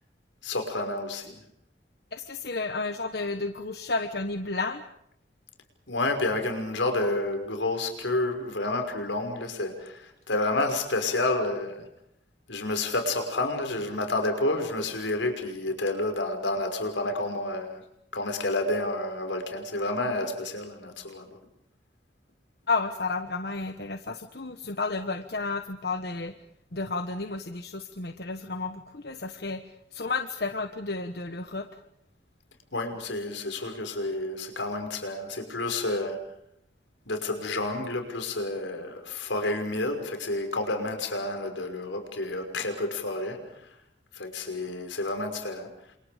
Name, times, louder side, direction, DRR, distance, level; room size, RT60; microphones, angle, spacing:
voice 1, 0.4-1.4 5.9-11.9 12.5-17.8 18.1-21.4 32.7-36.2 37.1-43.4 44.1-45.7, left 2 dB, 85° left, 5 dB, 5.8 m, -30 dB
voice 2, 2.1-4.8 22.7-26.3 26.7-31.7, left 3 dB, 60° left, 7 dB, 1.3 m, -32 dB
30.0 x 27.5 x 5.2 m, 0.75 s
head